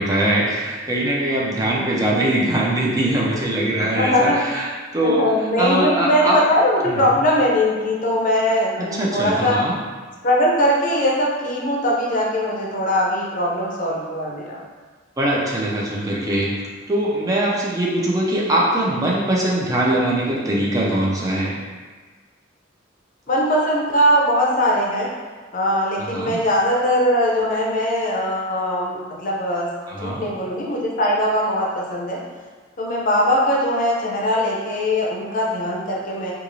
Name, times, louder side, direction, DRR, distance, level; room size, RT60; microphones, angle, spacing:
voice 1, 0.0-4.7 4.9-5.3 5.6-6.4 6.9-7.0 8.8-9.7 15.2-16.5 16.9-21.5 26.0-26.4 29.9-30.2, right 1 dB, 20° right, -4 dB, 0.5 m, -21 dB
voice 2, 3.8-4.4 5.0-9.6 10.2-14.6 23.3-25.1 25.5-29.7 30.0-32.2 32.8-36.3, equal, 45° left, -3 dB, 0.6 m, -20 dB
2.6 x 2.4 x 3.0 m, 1.4 s
head